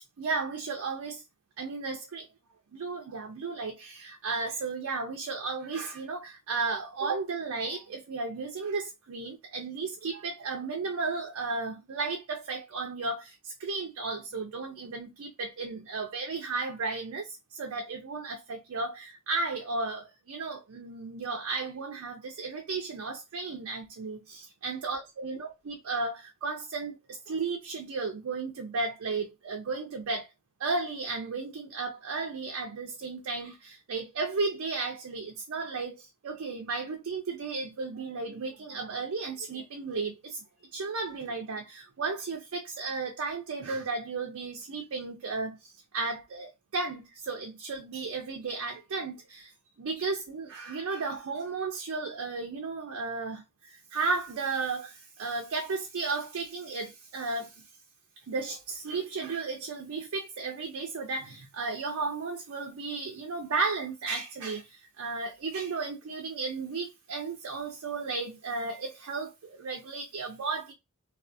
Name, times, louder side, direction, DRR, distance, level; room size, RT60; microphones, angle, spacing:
voice 1, 0.2-1.2 1.6-2.3 2.7-30.3 30.6-40.4 40.7-49.5 49.8-57.6 58.3-70.7, right 4 dB, 65° right, 0.4 m, -34 dB
2.3 x 2.3 x 2.5 m
head